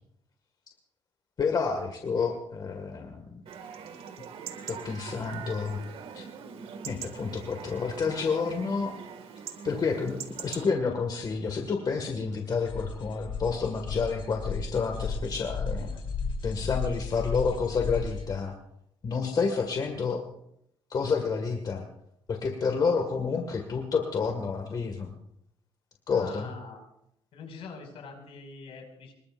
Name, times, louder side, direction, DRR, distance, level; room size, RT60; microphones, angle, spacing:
voice 1, 1.4-3.4 4.7-5.8 6.1-6.2 6.9-9.0 9.6-15.9 16.4-18.6 19.0-20.2 20.9-21.8 22.3-25.1 26.1-26.5, left 5 dB, 40° left, 3 dB, 2.0 m, -29 dB
Chatter / Livestock farm animals working animals / Chirp tweet, 3.5-10.7, right 7 dB, 75° right, 2.2 m, -42 dB
sound 1, 12.6-18.3, left 4 dB, 60° left, 4.1 m, -34 dB
voice 2, 26.1-26.8 27.3-29.1, left 4 dB, 75° left, 2 dB, 6.1 m, -43 dB
25.5 x 22.0 x 2.6 m, 0.76 s
cardioid pair, 120°, 10 cm